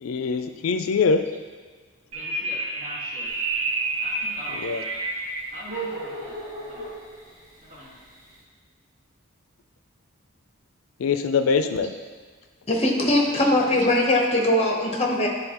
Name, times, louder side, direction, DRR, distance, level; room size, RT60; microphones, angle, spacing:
voice 1, 0.0-1.3 4.5-4.8 11.0-11.9, left 5 dB, 80° left, 8 dB, 0.4 m, -23 dB
voice 2, 2.1-3.3 4.0-4.6 5.5-6.4 6.7-6.9 7.7-7.9 13.1-13.5, equal, 35° right, -9 dB, 1.7 m, -42 dB
sound 1, 2.1-5.6, right 2 dB, 75° right, 0.8 m, -29 dB
sound 2, 3.2-8.4, right 2 dB, 15° right, 1.2 m, -38 dB
voice 3, 12.7-15.3, left 1 dB, 30° left, 0 dB, 0.9 m, -21 dB
10.0 x 3.9 x 2.9 m, 1.5 s
head